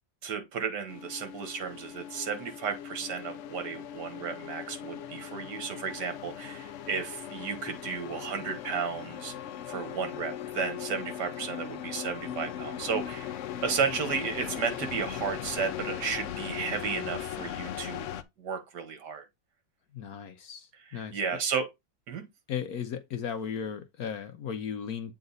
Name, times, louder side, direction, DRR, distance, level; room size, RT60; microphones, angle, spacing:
voice 1, 0.2-9.3 9.7-13.3 13.6-19.3 20.8-21.7 22.1-22.2, right 6 dB, 65° right, 1.9 m, -33 dB
sound 1, 0.9-18.2, left 10 dB, 85° left, 0.6 m, -39 dB
voice 2, 19.9-21.4 22.5-25.1, left 7 dB, 65° left, 1.1 m, -36 dB
7.8 x 3.9 x 4.0 m
omnidirectional pair, 2.0 m